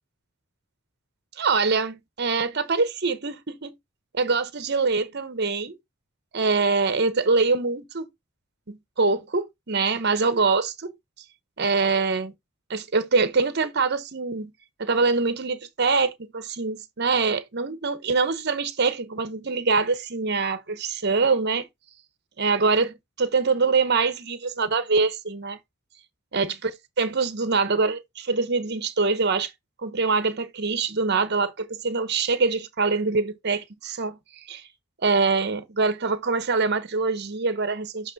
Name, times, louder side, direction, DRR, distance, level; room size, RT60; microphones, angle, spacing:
voice 1, 1.4-3.7 4.2-5.8 6.3-8.1 8.7-10.9 11.6-12.3 12.7-14.5 14.8-21.7 22.4-25.6 26.3-26.7 27.0-29.5 29.8-34.2 34.5-34.6 35.0-38.1, right 4 dB, 50° right, 0.9 m, -24 dB
8.0 x 3.0 x 4.0 m
head